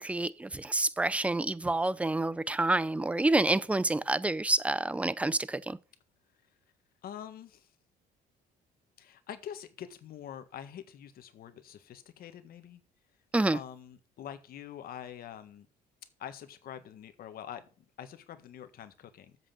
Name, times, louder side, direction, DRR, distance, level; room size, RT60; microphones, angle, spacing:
voice 1, 0.0-5.8 13.3-13.6, right 2 dB, 10° right, 0.5 m, -28 dB
voice 2, 7.0-7.7 9.0-12.8 13.5-15.7 16.2-19.4, left 10 dB, 60° left, 1.5 m, -45 dB
8.0 x 6.2 x 7.6 m
cardioid pair, 110°, 17 cm